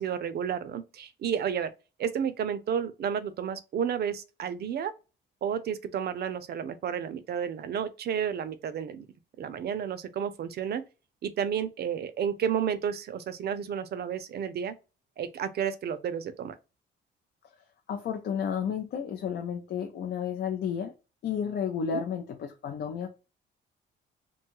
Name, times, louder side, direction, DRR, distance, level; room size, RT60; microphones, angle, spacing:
voice 1, 0.0-1.7 2.0-4.9 5.4-9.1 9.4-10.8 11.2-14.7 15.2-16.6 21.9-22.0, right 8 dB, 55° right, 0.5 m, -31 dB
voice 2, 17.9-20.9 21.2-23.1, left 7 dB, 60° left, 0.5 m, -32 dB
2.6 x 2.3 x 2.9 m
cardioid pair, 90°, 20 cm